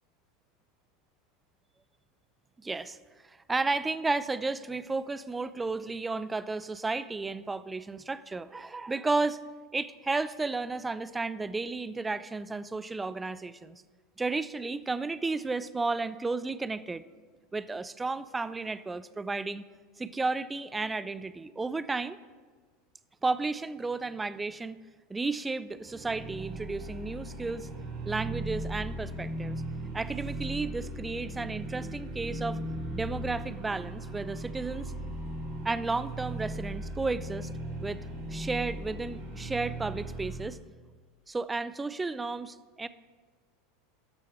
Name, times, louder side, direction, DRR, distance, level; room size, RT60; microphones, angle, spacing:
voice 1, 2.6-3.0 3.2-9.4 9.7-13.8 14.2-17.0 17.5-19.6 20.0-22.2 23.2-24.8 25.1-27.7 28.1-29.6 29.9-32.6 32.9-34.9 35.6-37.5 37.8-38.0 38.3-40.6 41.3-42.9, right 3 dB, 15° right, 15 dB, 0.4 m, -33 dB
sound 1, 25.7-40.5, right 1 dB, 50° right, 3.7 m, -38 dB
12.5 x 6.4 x 5.6 m, 1.5 s
figure-of-eight pair, 80°, 0 cm